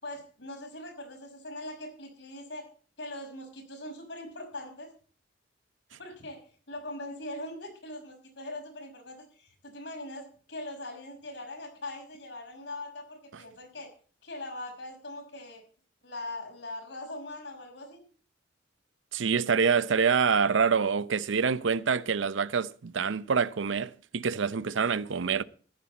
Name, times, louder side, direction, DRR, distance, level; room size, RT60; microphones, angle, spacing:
voice 1, 0.0-2.7 3.0-4.9 5.9-13.9 14.2-15.6 16.0-18.0, left 1 dB, 70° left, 5.7 m, -41 dB
voice 2, 19.1-25.4, right 6 dB, 85° right, 0.6 m, -26 dB
15.0 x 11.0 x 4.2 m
head